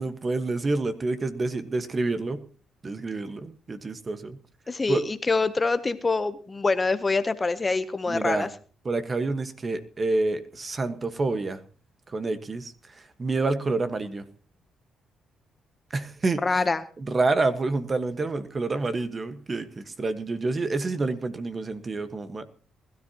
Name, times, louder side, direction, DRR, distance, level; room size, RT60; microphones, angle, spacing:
voice 1, 0.0-2.4 2.8-4.4 4.9-5.0 8.1-8.5 8.8-11.6 12.1-14.2 15.9-16.6 17.0-22.4, right 3 dB, 30° right, 11 dB, 1.3 m, -28 dB
voice 2, 4.7-8.5 16.4-16.8, left 3 dB, 25° left, 13 dB, 0.8 m, -25 dB
20.5 x 13.0 x 2.9 m, 0.39 s
cardioid pair, 90°, 0 cm